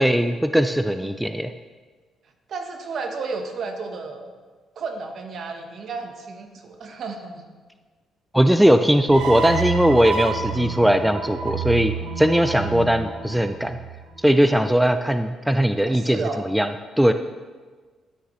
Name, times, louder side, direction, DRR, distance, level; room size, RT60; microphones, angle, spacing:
voice 1, 0.0-1.5 8.3-13.8 14.2-17.1, equal, 5° right, 9 dB, 0.3 m, -19 dB
voice 2, 2.5-4.3 4.8-7.4 15.9-16.4, right 4 dB, 60° right, 5 dB, 1.1 m, -32 dB
sound 1, 9.1-14.3, right 6 dB, 85° right, 0.9 m, -29 dB
12.5 x 6.5 x 3.1 m, 1.4 s
cardioid pair, 90°, 0 cm